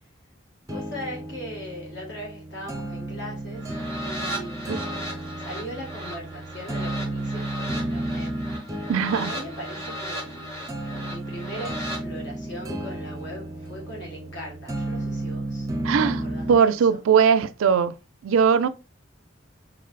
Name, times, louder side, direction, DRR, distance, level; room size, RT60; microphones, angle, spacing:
voice 1, 0.7-3.7 4.0-4.8 5.4-8.3 9.2-15.7 16.0-17.0, equal, 60° left, 1.6 m, -39 dB
sound 1, 0.7-16.7, right 1 dB, 15° right, 0.5 m, -33 dB
sound 2, 3.5-12.0, equal, 15° left, 1.1 m, -36 dB
voice 2, 8.9-9.3 15.8-16.2 16.5-18.0 18.2-18.7, right 6 dB, 90° right, 0.4 m, -20 dB
3.9 x 3.2 x 2.4 m
head